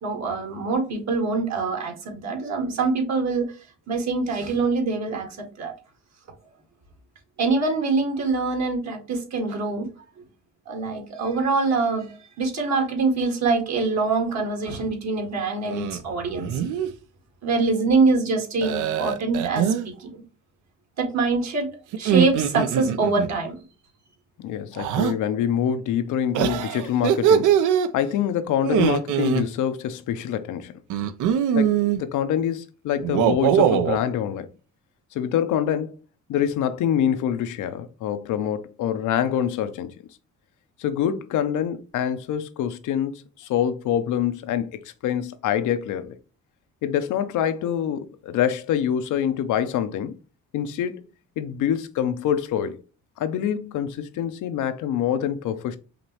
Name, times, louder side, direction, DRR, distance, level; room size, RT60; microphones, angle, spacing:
voice 1, 0.0-3.5 3.9-5.3 5.6-5.7 7.4-9.9 10.7-16.6 17.4-20.2 21.0-21.7 22.0-23.6, right 3 dB, 65° right, 1.7 m, -24 dB
sound 1, 15.7-16.0 16.4-16.9 18.6-19.9 21.9-23.3 24.8-25.1 26.3-27.9 28.6-29.4 30.9-32.0 33.0-34.0, right 9 dB, 80° right, 0.5 m, -22 dB
voice 2, 24.4-27.5 27.9-30.8 31.5-34.5 35.1-35.9 36.3-39.9 40.8-46.2 46.8-50.2 50.5-51.0 51.4-52.8 53.2-55.8, left 9 dB, 80° left, 0.7 m, -25 dB
5.1 x 3.0 x 2.9 m
cardioid pair, 90°, 30 cm